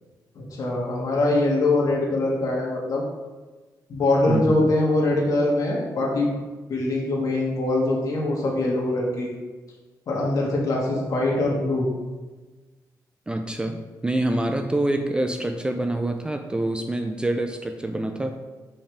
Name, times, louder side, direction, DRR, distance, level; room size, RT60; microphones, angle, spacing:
voice 1, 0.4-3.1 3.9-6.3 6.7-9.3 10.1-11.9, left 2 dB, 55° left, -3 dB, 1.8 m, -23 dB
voice 2, 4.3-4.7 13.3-18.3, right 1 dB, 10° right, 6 dB, 0.4 m, -26 dB
6.8 x 5.4 x 3.4 m, 1.3 s
cardioid pair, 125°, 7 cm